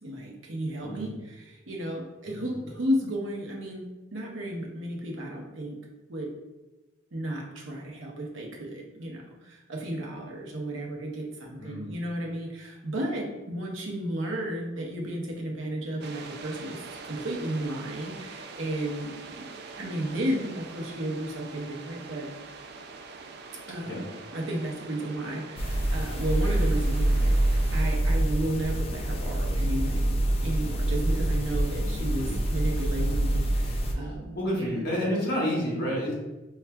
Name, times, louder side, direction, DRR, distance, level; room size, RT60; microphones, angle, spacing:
voice 1, 0.0-3.9 4.1-5.8 6.1-6.3 7.1-22.3 23.7-24.0 24.3-34.7, right 1 dB, 80° right, 0 dB, 0.8 m, -33 dB
voice 2, 0.8-1.1 2.2-2.5 11.6-11.9 23.8-24.0 31.8-32.3 34.0-36.1, equal, 55° left, -4 dB, 1.1 m, -30 dB
sound 1, 16.0-27.9, right 4 dB, 55° right, 0.3 m, -44 dB
sound 2, 25.6-33.9, right 1 dB, 30° left, 0.3 m, -26 dB
5.5 x 2.3 x 2.3 m, 1.1 s
head